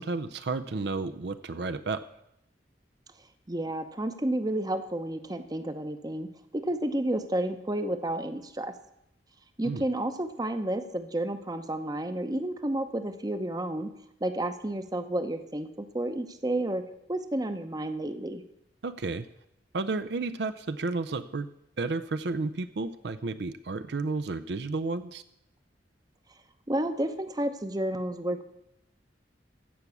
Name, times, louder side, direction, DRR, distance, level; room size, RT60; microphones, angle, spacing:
voice 1, 0.0-2.0 9.6-9.9 18.8-19.3 19.7-21.5 21.8-25.2, right 3 dB, 65° right, 10 dB, 0.5 m, -32 dB
voice 2, 3.5-6.3 6.5-8.7 9.6-13.9 14.2-16.8 17.1-18.4 26.7-28.5, right 1 dB, 20° right, 9 dB, 0.8 m, -31 dB
15.0 x 6.0 x 8.3 m, 0.81 s
head